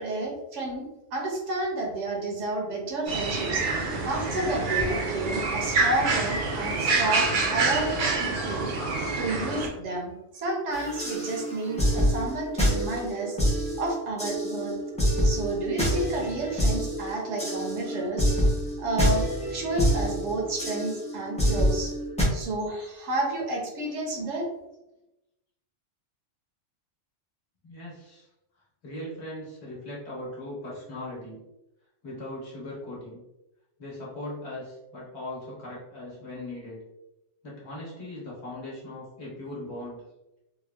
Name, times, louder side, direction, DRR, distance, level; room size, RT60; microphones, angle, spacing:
voice 1, 0.0-3.7 4.0-8.7 9.2-13.4 13.8-14.7 15.2-18.3 18.8-21.9 22.3-24.5, right 2 dB, 75° right, 0 dB, 1.0 m, -31 dB
sound 1, 3.1-9.7, right 3 dB, 60° right, 0.5 m, -27 dB
sound 2, 10.7-22.2, equal, 10° left, 0.4 m, -27 dB
voice 2, 27.6-28.3 28.8-31.4 32.0-33.2 33.8-36.8 37.4-40.0, left 1 dB, 65° left, -6 dB, 1.4 m, -39 dB
3.4 x 2.0 x 2.2 m, 0.93 s
omnidirectional pair, 1.3 m